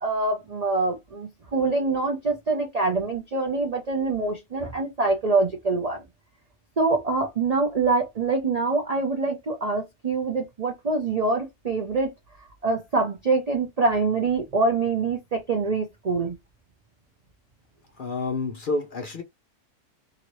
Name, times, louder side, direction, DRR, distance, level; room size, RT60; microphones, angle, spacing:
voice 1, 0.0-6.0 6.8-12.1 12.6-16.3, right 3 dB, 60° right, 0.4 m, -25 dB
voice 2, 18.0-19.2, left 3 dB, 60° left, 0.5 m, -29 dB
2.9 x 2.8 x 3.0 m
omnidirectional pair, 1.6 m